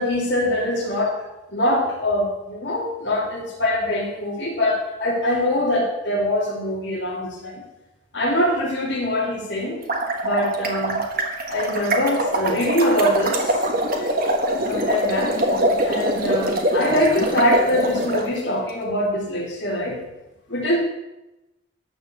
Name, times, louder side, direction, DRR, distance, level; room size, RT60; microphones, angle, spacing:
voice 1, 0.0-7.6 8.1-9.8 10.2-11.0 11.5-13.5 14.0-14.1 14.7-15.4 15.8-20.0 20.5-20.8, left 1 dB, 60° left, -1 dB, 2.6 m, -23 dB
sound 1, 9.7-18.2, right 1 dB, 45° right, 1.4 m, -23 dB
12.5 x 4.6 x 7.5 m, 0.99 s
head